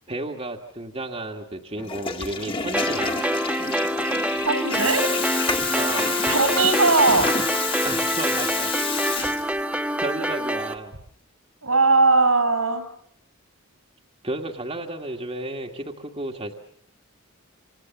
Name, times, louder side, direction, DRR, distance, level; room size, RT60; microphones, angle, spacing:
voice 1, 0.1-3.2 5.8-6.1 7.8-8.7 9.5-9.7 10.0-10.9 14.2-16.5, right 2 dB, 30° right, 2 dB, 2.0 m, -32 dB
Water tap faucet / Toilet flush, 1.8-9.8, left 5 dB, 25° left, 2.3 m, -28 dB
sound 1, 2.7-10.7, right 1 dB, 5° right, 1.2 m, -26 dB
voice 2, 4.4-5.1 5.4-5.9 6.3-7.5 9.2-9.4 10.2-10.3 11.6-12.9, right 3 dB, 85° right, 9 dB, 5.8 m, -20 dB
28.0 x 27.5 x 7.2 m, 0.65 s
head